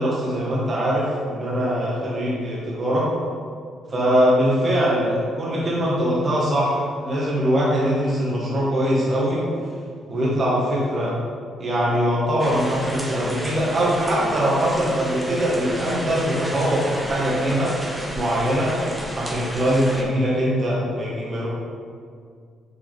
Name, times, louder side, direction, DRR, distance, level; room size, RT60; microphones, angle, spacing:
voice 1, 0.0-3.1 3.9-9.4 10.1-11.1 11.6-17.7 18.1-18.7 19.1-21.5, equal, 40° right, -6 dB, 1.5 m, -22 dB
sound 1, 12.4-20.0, equal, 15° right, 1.0 m, -32 dB
6.6 x 5.0 x 3.5 m, 2.1 s
cardioid pair, 90°, 0 cm